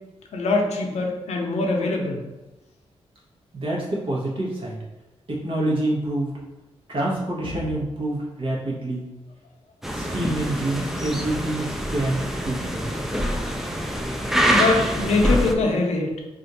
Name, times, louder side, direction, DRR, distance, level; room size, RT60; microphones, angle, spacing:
voice 1, 0.3-2.2 7.4-7.5 14.5-16.2, left 3 dB, 75° left, 2 dB, 0.6 m, -23 dB
voice 2, 3.5-4.8 5.3-6.3 6.9-9.1 9.9-12.8, right 1 dB, 50° right, -4 dB, 1.0 m, -27 dB
sound 1, 9.8-15.5, equal, 5° right, 0.3 m, -25 dB
2.5 x 2.5 x 4.1 m, 1.0 s
wide cardioid pair, 130°, 11 cm